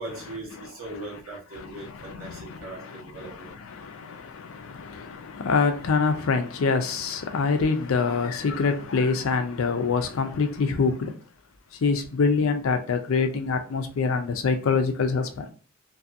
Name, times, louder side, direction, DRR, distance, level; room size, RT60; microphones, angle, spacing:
voice 1, 0.0-3.5, right 2 dB, 80° right, 1.2 m, -39 dB
voice 2, 1.5-11.2 11.7-15.5, left 4 dB, 80° left, 0.4 m, -26 dB
2.6 x 2.5 x 2.6 m
head